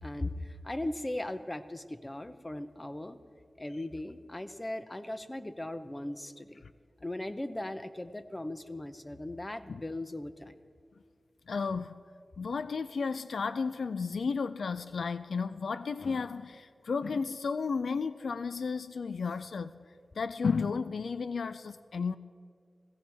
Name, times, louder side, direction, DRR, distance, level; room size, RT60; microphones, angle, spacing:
voice 1, 0.0-3.2 3.6-6.6 7.0-10.6, left 1 dB, 25° left, 0.7 m, -38 dB
voice 2, 11.5-11.9 12.4-19.7 20.2-22.2, left 5 dB, 80° left, 0.3 m, -33 dB
17.5 x 16.5 x 3.5 m
wide cardioid pair, 60°, 0 cm